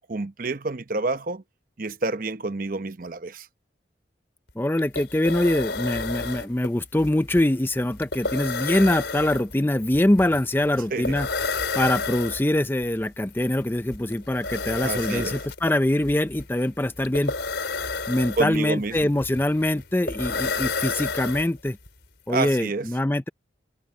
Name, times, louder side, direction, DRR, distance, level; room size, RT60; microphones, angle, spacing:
voice 1, 0.1-1.4 1.8-3.5 10.9-11.2 14.8-15.4 18.4-18.9 22.3-22.9, right 3 dB, 45° right, 0.8 m, -28 dB
sound 1, 4.5-4.6 4.8-21.9, left 4 dB, 65° left, 4.3 m, -31 dB
voice 2, 4.6-11.3 11.7-17.3 18.1-21.8 22.3-23.3, left 1 dB, 10° left, 0.5 m, -23 dB
head